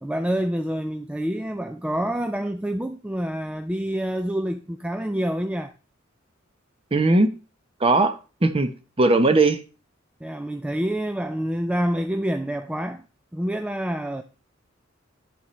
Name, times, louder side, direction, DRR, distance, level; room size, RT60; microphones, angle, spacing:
voice 1, 0.0-5.7 10.2-13.0 13.3-14.2, equal, 5° right, 0.4 m, -27 dB
voice 2, 6.9-7.3 7.8-8.1 8.4-8.7 9.0-9.6, right 2 dB, 30° right, 0.8 m, -18 dB
10.5 x 7.1 x 3.1 m
head